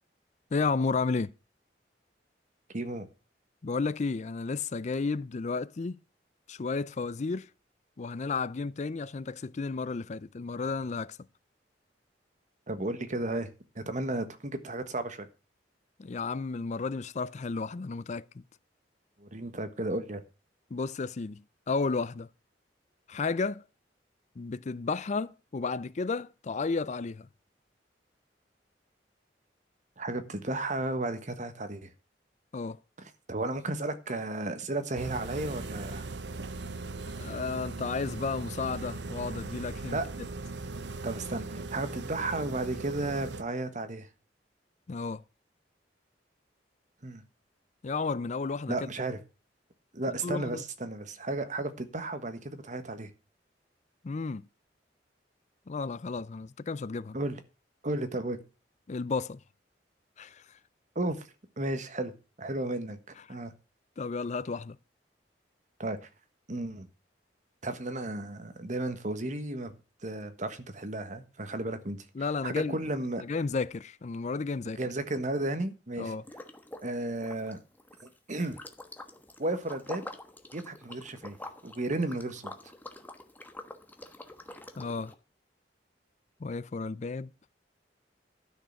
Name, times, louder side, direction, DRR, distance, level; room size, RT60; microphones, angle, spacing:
voice 1, 0.5-1.3 3.6-6.0 6.5-7.5 8.0-11.2 16.0-18.2 20.7-22.3 23.1-23.6 24.4-27.3 32.5-32.8 37.2-40.0 44.9-45.2 47.8-48.7 50.1-50.6 54.0-54.4 55.7-57.2 58.9-59.4 60.2-60.4 63.3-63.4 64.0-64.8 72.1-72.8 73.2-74.8 76.0-76.2 84.8-85.1 86.4-87.3, left 4 dB, 40° left, 0.4 m, -32 dB
voice 2, 2.7-3.1 12.7-13.5 13.7-15.3 19.2-20.2 30.0-31.9 33.3-36.1 39.9-40.0 41.0-44.1 47.0-47.2 48.7-49.2 49.9-53.1 57.1-57.4 57.8-58.4 60.9-61.3 61.6-62.1 62.4-63.0 63.3-63.5 65.8-66.0 66.5-66.9 67.6-69.7 70.0-72.0 72.4-73.2 74.8-76.1 76.8-77.6 78.0-78.6 79.4-80.1 80.5-81.4 81.6-82.7, right 2 dB, 45° right, 1.4 m, -33 dB
sound 1, 35.0-43.4, right 3 dB, 80° right, 0.9 m, -39 dB
Liquid, 76.2-76.9 77.2-85.1, left 1 dB, 10° left, 1.2 m, -46 dB
12.0 x 6.6 x 5.9 m
head